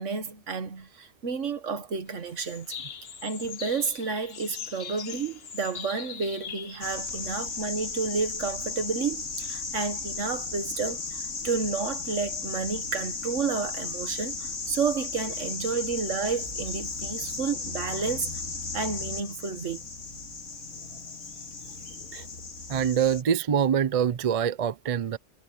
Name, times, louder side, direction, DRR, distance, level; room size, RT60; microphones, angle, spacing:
voice 1, 0.0-2.7 3.2-18.3 18.7-19.8, right 5 dB, 80° right, 1.7 m, -31 dB
sound 1, 2.1-7.8, left 7 dB, 55° left, 1.2 m, -41 dB
sound 2, 6.8-23.2, left 4 dB, 80° left, 2.3 m, -35 dB
voice 2, 22.7-25.2, right 8 dB, 45° right, 0.5 m, -25 dB
omnidirectional pair, 1.2 m